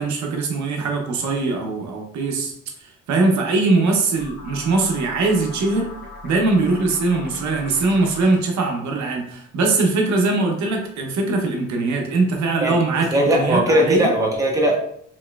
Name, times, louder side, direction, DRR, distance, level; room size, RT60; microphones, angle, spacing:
voice 1, 0.0-2.5 3.1-5.9 6.2-14.1, right 3 dB, 70° right, 2 dB, 0.7 m, -21 dB
sound 1, 4.2-8.6, left 3 dB, 40° left, 1.2 m, -39 dB
voice 2, 12.6-14.9, equal, 10° right, -1 dB, 0.8 m, -19 dB
3.0 x 2.9 x 2.2 m, 0.67 s
cardioid pair, 90°, 30 cm